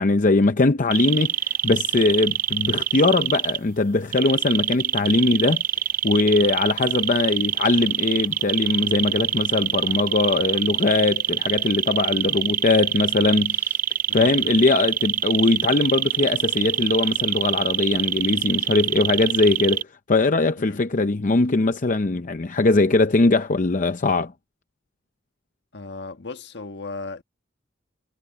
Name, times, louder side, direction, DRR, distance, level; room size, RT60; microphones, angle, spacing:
voice 1, 0.0-5.6 6.0-13.8 14.1-24.3, left 3 dB, 45° left, 0.6 m, -21 dB
sound 1, 0.9-3.6 4.1-19.8, right 11 dB, 45° right, 0.4 m, -24 dB
voice 2, 14.1-14.5 20.6-20.9 25.7-27.2, left 3 dB, 60° left, 1.5 m, -36 dB
head